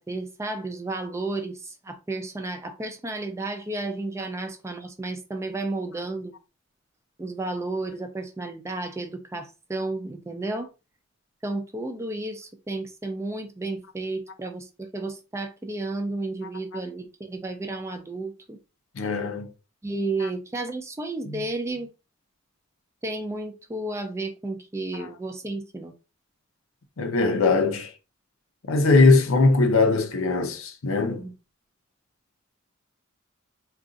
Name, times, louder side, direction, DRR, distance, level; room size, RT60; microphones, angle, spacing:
voice 1, 0.0-6.3 7.2-10.7 11.4-18.6 19.8-21.9 23.0-25.9 31.2-31.3, right 2 dB, 15° right, 0.4 m, -32 dB
voice 2, 19.0-19.5 20.2-20.3 21.3-21.4 27.0-27.9 28.7-31.2, left 3 dB, 70° left, 0.6 m, -20 dB
2.5 x 2.3 x 3.8 m
head